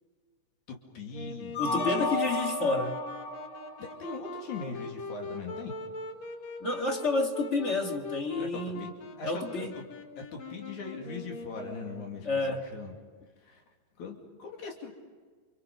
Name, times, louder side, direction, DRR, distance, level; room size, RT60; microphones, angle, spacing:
voice 1, 0.7-1.5 1.8-2.3 3.8-5.8 8.4-9.9 10.2-13.0 13.4-13.6 14.0-14.9, left 4 dB, 85° left, 3.9 m, -41 dB
Wind instrument woodwind instrument, 1.1-12.3, left 2 dB, 65° left, 3.0 m, -42 dB
sound 1, 1.5-4.7, left 1 dB, 45° left, 2.4 m, -33 dB
voice 2, 1.6-3.0 6.6-8.8 9.2-9.8 12.3-12.6, left 3 dB, 25° left, 1.9 m, -30 dB
28.5 x 27.0 x 5.3 m
omnidirectional pair, 3.3 m